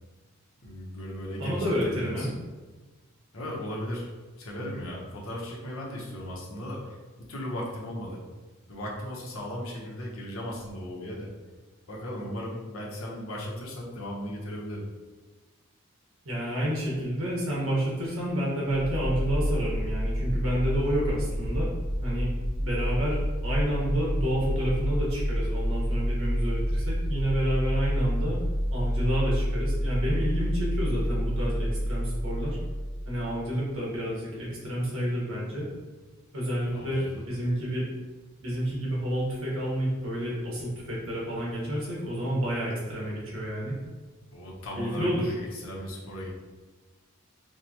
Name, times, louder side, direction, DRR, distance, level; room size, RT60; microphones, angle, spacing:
voice 1, 0.6-2.3 3.3-4.1 4.4-7.0 7.3-8.2 8.7-11.3 11.9-14.8 36.7-37.2 44.3-46.3, equal, 85° left, -3 dB, 0.9 m, -36 dB
voice 2, 1.4-2.3 16.2-21.7 22.0-22.3 22.6-28.4 28.7-32.6 33.0-35.7 36.3-37.9 38.4-43.7 44.8-45.3, equal, 80° right, -4 dB, 1.3 m, -29 dB
sound 1, 18.7-33.4, equal, 50° left, 0.6 m, -28 dB
4.7 x 2.2 x 2.9 m, 1.3 s
head